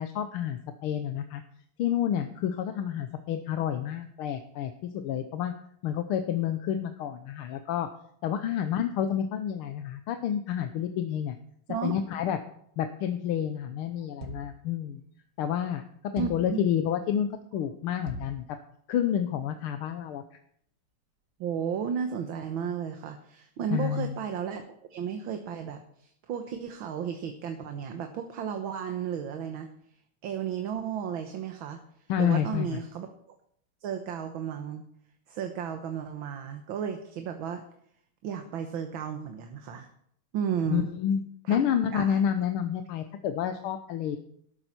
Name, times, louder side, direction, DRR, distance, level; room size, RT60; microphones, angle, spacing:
voice 1, 0.0-1.4 1.8-5.5 5.8-7.9 8.2-11.3 11.8-12.4 12.8-15.0 15.4-15.8 16.1-18.6 18.9-20.2 23.7-24.1 32.1-32.8 40.7-41.2 41.5-44.2, left 9 dB, 80° left, 8 dB, 1.7 m, -29 dB
sound 1, 14.2-14.6 16.2-16.6 18.1-18.4, right 3 dB, 40° right, 2.0 m, -41 dB
voice 2, 16.2-16.7 21.4-24.6 24.9-29.7 30.2-31.8 32.2-33.1 33.8-34.8 35.3-37.6 38.2-39.9 40.3-40.9 41.5-41.6 41.9-42.2, right 7 dB, 70° right, 6 dB, 1.8 m, -33 dB
12.5 x 12.5 x 4.4 m, 0.67 s
omnidirectional pair, 2.3 m